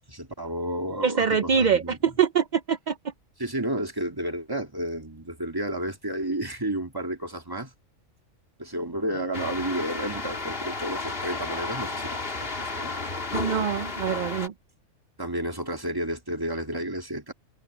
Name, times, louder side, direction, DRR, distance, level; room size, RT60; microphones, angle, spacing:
voice 1, 0.0-2.0 3.4-7.7 8.6-12.9 15.2-17.3, right 1 dB, 15° right, 2.4 m, -31 dB
voice 2, 1.0-3.1 13.3-14.5, right 7 dB, 45° right, 0.7 m, -24 dB
sound 1, 9.3-14.5, left 3 dB, 45° left, 2.3 m, -32 dB
omnidirectional pair, 1.3 m